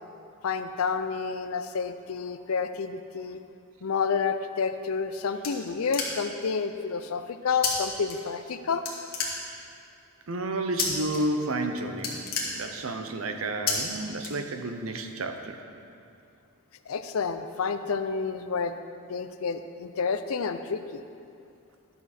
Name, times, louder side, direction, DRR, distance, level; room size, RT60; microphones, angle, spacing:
voice 1, 0.4-3.4 3.8-8.8 16.9-18.8 19.1-21.0, left 5 dB, 85° left, 10 dB, 0.5 m, -29 dB
sound 1, 4.8-6.5 7.6-7.7 8.0-8.6 8.8-9.8 10.8-11.2 11.5-11.7 11.9-13.1 13.7-13.8 14.2-14.8, left 5 dB, 45° left, 1.4 m, -31 dB
voice 2, 10.3-12.2 12.6-15.6, right 2 dB, 80° right, 6 dB, 0.7 m, -31 dB
11.0 x 6.9 x 4.3 m, 2.5 s
head